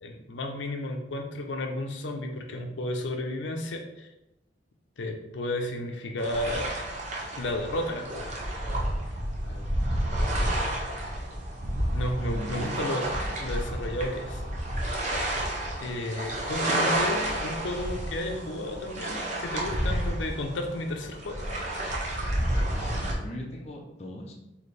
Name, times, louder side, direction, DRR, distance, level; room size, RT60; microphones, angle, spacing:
voice 1, 0.0-4.1 5.0-6.6 7.4-8.4 11.9-13.1 13.4-14.4 15.8-21.4, left 1 dB, 80° left, 3 dB, 0.6 m, -33 dB
sound 1, 6.2-23.1, right 1 dB, 40° right, 0.7 m, -30 dB
voice 2, 9.4-9.7 12.3-12.8 22.5-24.3, left 1 dB, 35° left, -1 dB, 0.6 m, -41 dB
4.1 x 2.8 x 3.2 m, 0.89 s
head